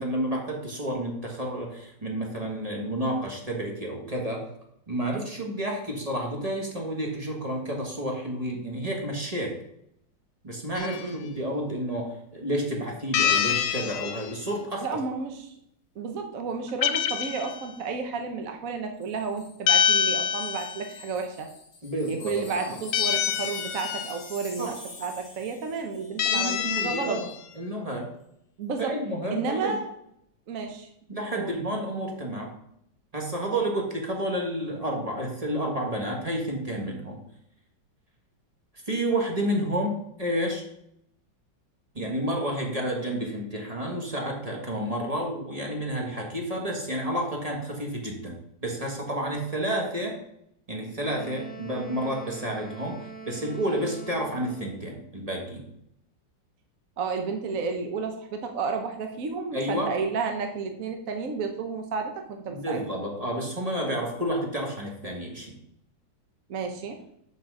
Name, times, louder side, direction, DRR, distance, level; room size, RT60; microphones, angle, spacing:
voice 1, 0.0-4.4 4.9-9.6 10.4-14.8 21.8-22.8 24.6-24.7 26.3-27.3 27.5-28.1 28.9-29.8 31.1-32.5 33.1-37.2 38.9-40.6 41.9-48.4 48.6-50.2 50.7-52.9 53.2-55.6 59.5-59.9 62.5-65.5, right 1 dB, 20° right, 0 dB, 1.5 m, -30 dB
sound 1, 10.8-11.0 13.1-14.3 16.7-17.7 19.7-20.9 22.9-24.2 26.2-27.3, left 8 dB, 80° left, 1.3 m, -26 dB
voice 2, 10.8-11.2 14.8-15.5 16.0-21.5 22.1-27.2 28.6-28.9 29.3-29.9 30.5-30.9 31.3-31.6 57.0-62.8 66.5-67.0, right 5 dB, 55° right, 5 dB, 1.1 m, -32 dB
Wind chime, 19.0-26.2 26.5-26.7, left 3 dB, 25° left, 1.1 m, -46 dB
Wind instrument woodwind instrument, 51.0-54.9, right 4 dB, 10° left, 0.5 m, -43 dB
6.0 x 5.7 x 6.2 m, 0.75 s
omnidirectional pair, 2.0 m